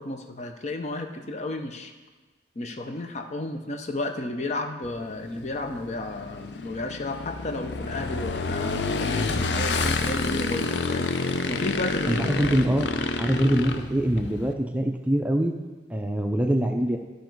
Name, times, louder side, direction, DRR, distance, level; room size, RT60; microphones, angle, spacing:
voice 1, 0.0-1.9 2.6-11.1 11.5-12.3, left 2 dB, 40° left, 5 dB, 0.6 m, -32 dB
Motorcycle / Engine, 4.8-14.5, left 3 dB, 85° left, 0.6 m, -29 dB
voice 2, 12.1-12.9 13.2-15.6 15.9-17.0, right 1 dB, 10° right, 3 dB, 0.4 m, -24 dB
12.5 x 5.1 x 4.6 m, 1.3 s
head